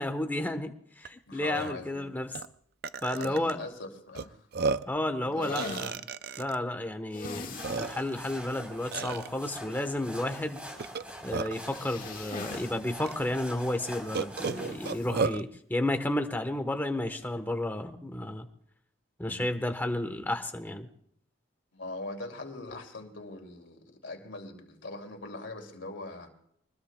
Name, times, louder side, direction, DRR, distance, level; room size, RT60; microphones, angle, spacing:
voice 1, 0.0-2.3 3.0-3.6 4.9-5.9 6.4-10.6 11.2-18.5 19.2-20.9, left 1 dB, 10° left, 6 dB, 1.1 m, -32 dB
Burping eructation, 1.1-1.2 1.5-1.7 2.4-2.5 2.8-3.5 4.2-4.3 4.5-5.0 5.6-6.6 7.2-7.3 7.6-8.2 8.9-9.3 10.8-11.7 12.5-12.6 13.1-13.2 14.1-15.4, right 4 dB, 50° right, 0.5 m, -32 dB
voice 2, 1.3-2.1 3.2-4.5 5.2-5.9 19.3-19.5 21.7-26.3, left 2 dB, 70° left, 3 dB, 2.7 m, -41 dB
sound 1, 5.4-5.9 7.1-7.9 8.3-8.4 8.8-8.9 11.5-12.7 13.0-13.1 14.8-15.1, left 4 dB, 45° left, 1.8 m, -42 dB
sound 2, 7.3-15.0, equal, 5° right, 3.9 m, -44 dB
24.0 x 20.5 x 2.3 m, 0.68 s
head